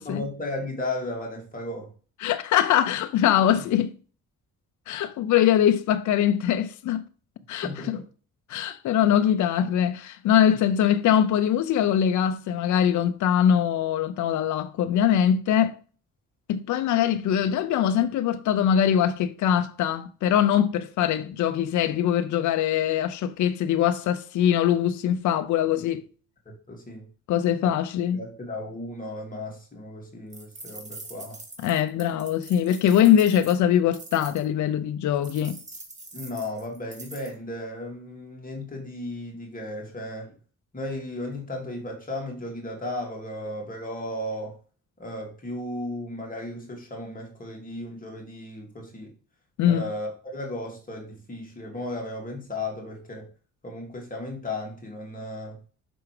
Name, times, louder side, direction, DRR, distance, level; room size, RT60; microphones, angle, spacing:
voice 1, 0.0-1.9 3.6-3.7 7.6-8.0 26.4-27.1 27.6-27.7 28.1-31.4 36.1-40.4 40.7-44.6 45.0-49.1 49.6-53.3 53.6-55.6, left 1 dB, 25° left, 2.8 m, -35 dB
voice 2, 2.2-3.9 4.9-7.0 7.5-8.0 8.5-15.8 16.5-26.0 27.3-28.2 31.6-35.6 49.6-49.9, left 10 dB, 70° left, 0.6 m, -22 dB
sound 1, 30.3-34.5 35.2-37.3, right 2 dB, 25° right, 1.8 m, -43 dB
6.1 x 4.8 x 4.8 m
cardioid pair, 90°, 30 cm